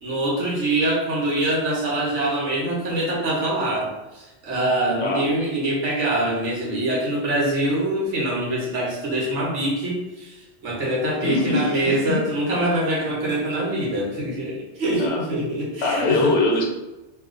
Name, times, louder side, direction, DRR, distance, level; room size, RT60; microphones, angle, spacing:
voice 1, 0.0-16.3, right 1 dB, 80° right, -4 dB, 1.3 m, -24 dB
voice 2, 11.2-11.6 12.1-12.2 15.0-15.2 15.8-16.7, left 2 dB, 90° left, 1 dB, 1.1 m, -21 dB
2.7 x 2.4 x 3.7 m, 1.1 s
omnidirectional pair, 1.2 m